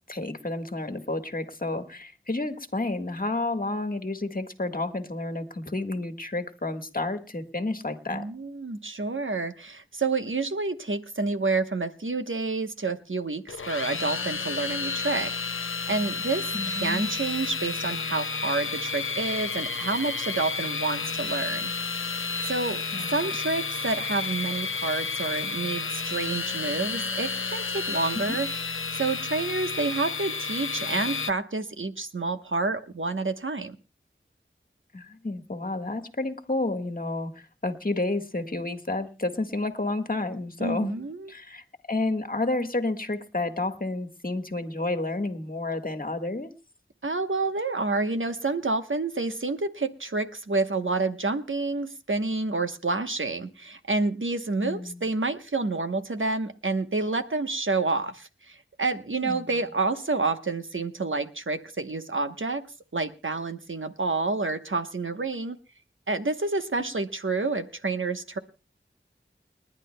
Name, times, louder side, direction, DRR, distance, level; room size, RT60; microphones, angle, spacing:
voice 1, 0.1-8.2 16.5-17.1 22.9-23.1 28.1-28.2 34.9-40.9 41.3-46.5 54.6-55.0 59.2-59.4, left 2 dB, 45° left, 5 dB, 1.5 m, -30 dB
voice 2, 8.1-15.3 15.9-21.7 22.4-22.8 23.1-28.5 28.9-33.8 40.6-41.3 47.0-62.6 62.9-65.6 66.1-68.4, right 3 dB, 75° right, 8 dB, 1.0 m, -29 dB
sound 1, 13.5-31.3, left 4 dB, 85° left, 0.7 m, -31 dB
30.0 x 10.5 x 2.2 m, 0.31 s
wide cardioid pair, 40°, 20 cm